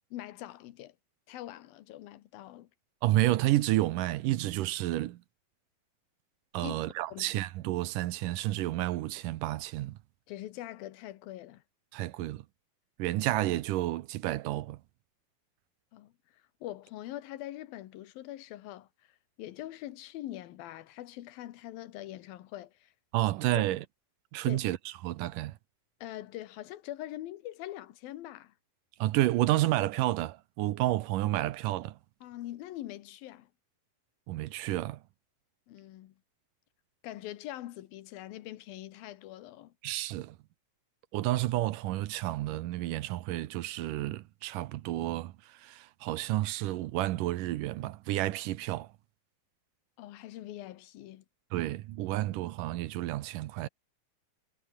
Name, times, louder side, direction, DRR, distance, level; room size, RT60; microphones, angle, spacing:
voice 1, 0.1-1.0 1.3-2.7 6.6-6.8 7.1-7.3 10.3-11.6 15.9-16.1 16.6-18.9 19.4-22.9 23.6-23.7 24.5-24.6 26.0-28.5 32.2-33.5 35.7-36.1 37.0-39.7 50.0-51.2, left 14 dB, 80° left, 2.9 m, -43 dB
voice 2, 3.0-5.2 6.5-10.0 11.9-12.5 13.0-14.8 23.1-23.8 24.3-24.8 25.0-25.6 29.0-32.0 34.3-35.0 39.8-40.4 41.1-48.9 51.5-53.7, right 16 dB, 75° right, 2.2 m, -30 dB
omnidirectional pair, 4.2 m